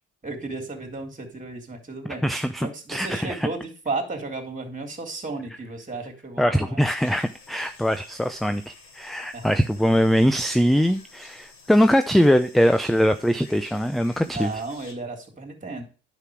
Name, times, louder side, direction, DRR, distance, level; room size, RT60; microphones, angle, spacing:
voice 1, 0.2-6.8 9.3-9.5 14.3-15.8, right 3 dB, 20° right, 2 dB, 3.2 m, -34 dB
voice 2, 2.2-3.4 6.4-14.5, equal, ahead, 10 dB, 0.5 m, -22 dB
sound 1, 7.0-14.9, left 4 dB, 65° left, 3.7 m, -50 dB
9.7 x 6.1 x 4.7 m, 0.36 s
hypercardioid pair, 60°, 37 cm